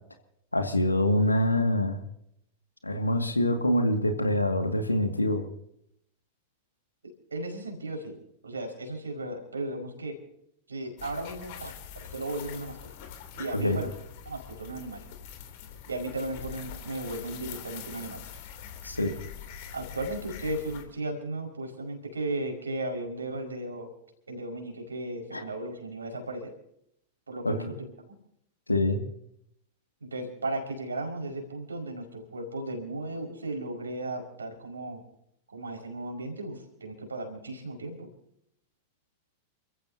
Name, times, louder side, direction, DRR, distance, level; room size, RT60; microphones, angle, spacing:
voice 1, 0.5-2.0 2.8-5.4 13.5-13.8 18.8-19.1 25.3-25.4 27.4-27.5 28.7-29.0, left 1 dB, 85° left, 6 dB, 2.2 m, -25 dB
voice 2, 7.3-8.2 8.4-10.2 10.7-11.7 12.1-12.9 13.4-13.9 14.3-15.0 15.9-18.2 19.7-23.9 24.3-26.5 27.3-27.9 30.0-35.0 35.5-38.1, right 2 dB, 75° right, 3 dB, 5.4 m, -35 dB
sound 1, 11.0-20.8, left 8 dB, 50° left, 3.2 m, -44 dB
29.5 x 15.0 x 2.8 m, 0.74 s
figure-of-eight pair, 90°, 0 cm